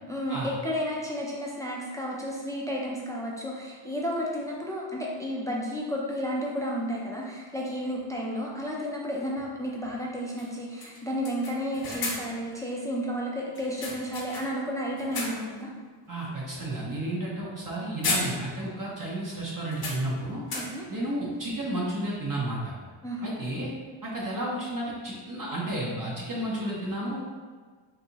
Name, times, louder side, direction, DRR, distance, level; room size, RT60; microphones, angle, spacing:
voice 1, 0.1-15.7 20.5-20.9 23.0-23.3, equal, 10° left, -3 dB, 0.3 m, -32 dB
sound 1, 7.2-7.3 9.4-9.5 9.8-9.9 10.4-10.5 10.8-12.5 13.5-14.7 15.0-15.6 16.1-16.3 17.5-17.7 18.0-18.8 19.0-19.1 19.7-21.0, left 3 dB, 50° left, 0.7 m, -35 dB
voice 2, 16.1-20.4 20.9-22.7 23.2-23.7 24.0-27.3, right 1 dB, 45° right, -5 dB, 0.6 m, -32 dB
3.9 x 2.6 x 2.8 m, 1.5 s
wide cardioid pair, 150°, 48 cm